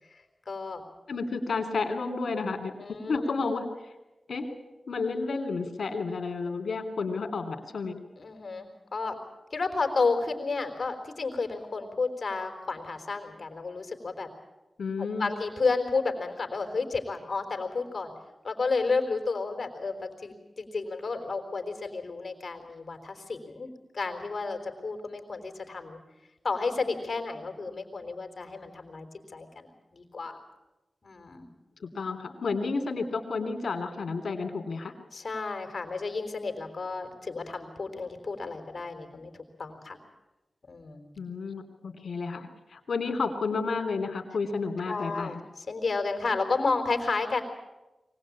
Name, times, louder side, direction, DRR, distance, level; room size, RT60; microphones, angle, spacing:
voice 1, 0.1-0.8 2.8-3.3 8.2-9.2 9.5-14.3 15.0-18.1 18.4-26.0 26.4-29.1 29.3-30.4 31.0-31.5 35.1-40.0 40.7-41.1 44.8-47.4, left 4 dB, 55° left, 5 dB, 4.1 m, -32 dB
voice 2, 1.1-2.7 3.1-3.6 4.3-4.5 4.9-8.0 14.8-15.3 31.9-34.9 41.2-45.4, left 4 dB, 80° left, 5 dB, 3.2 m, -31 dB
24.0 x 19.0 x 8.7 m, 1.1 s
cardioid pair, 55°, 0 cm